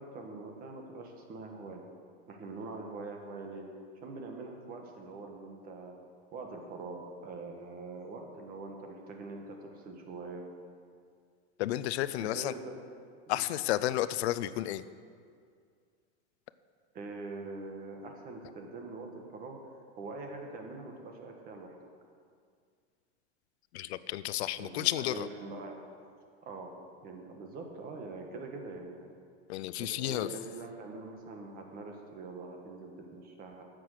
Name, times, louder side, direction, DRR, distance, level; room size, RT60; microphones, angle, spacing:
voice 1, 0.0-1.8 2.3-3.7 4.0-5.9 6.3-10.4 12.2-12.8 13.3-13.5 16.9-19.6 20.0-21.8 24.6-25.8 26.4-26.7 27.0-29.1 29.8-33.6, right 3 dB, 25° right, 3 dB, 1.4 m, -43 dB
voice 2, 11.6-12.5 13.3-14.8 23.7-25.3 29.5-30.3, left 14 dB, 70° left, 15 dB, 0.6 m, -32 dB
10.5 x 7.7 x 6.5 m, 2.2 s
supercardioid pair, 160°, 34 cm